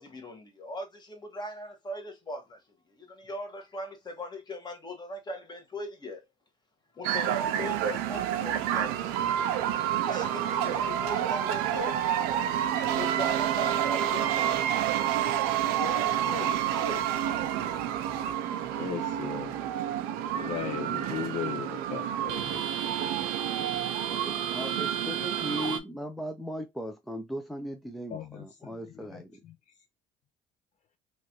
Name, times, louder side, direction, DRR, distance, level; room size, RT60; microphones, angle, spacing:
voice 1, 0.0-2.6 3.0-6.2 6.9-9.2 9.8-12.0 12.9-14.6 15.6-17.1, left 1 dB, 25° left, 1.4 m, -39 dB
sound 1, 7.0-25.8, right 10 dB, 80° right, 0.5 m, -29 dB
voice 2, 18.8-19.9 20.3-22.7 28.1-29.6, left 9 dB, 50° left, 0.6 m, -38 dB
voice 3, 24.1-29.4, equal, ahead, 0.5 m, -38 dB
3.0 x 2.6 x 2.9 m
supercardioid pair, 90°, 16 cm